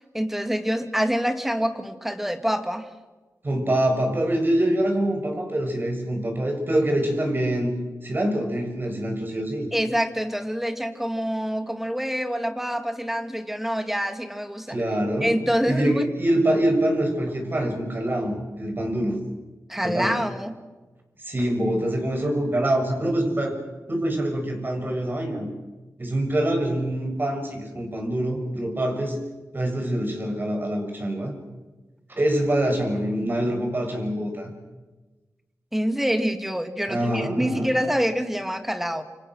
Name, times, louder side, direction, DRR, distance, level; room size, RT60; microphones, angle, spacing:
voice 1, 0.1-2.9 9.7-14.8 15.2-16.1 19.7-20.5 35.7-39.0, equal, 5° right, 8 dB, 2.6 m, -26 dB
voice 2, 3.4-7.7 8.0-9.7 14.7-15.3 15.7-19.2 19.8-20.1 21.2-23.6 23.9-25.5 26.0-29.2 29.5-31.3 32.1-34.5 36.9-37.7, right 1 dB, 35° right, 3 dB, 7.3 m, -25 dB
28.5 x 26.0 x 6.5 m, 1.2 s
wide cardioid pair, 80°, 6 cm